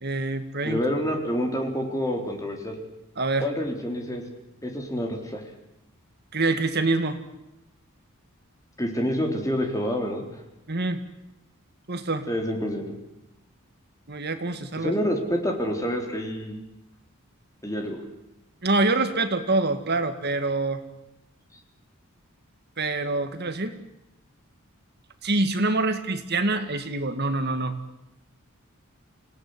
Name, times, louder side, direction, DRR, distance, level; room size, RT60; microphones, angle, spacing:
voice 1, 0.0-0.8 3.2-3.5 6.3-7.2 10.7-11.0 11.9-12.3 14.1-14.9 18.6-20.8 22.8-23.7 25.2-27.7, right 2 dB, 50° right, 8 dB, 2.0 m, -25 dB
voice 2, 0.6-2.8 3.4-4.2 4.6-5.4 8.8-10.4 12.3-12.9 14.8-16.6 17.6-18.0, equal, 15° left, 2 dB, 3.9 m, -27 dB
27.0 x 18.0 x 9.8 m, 0.92 s
head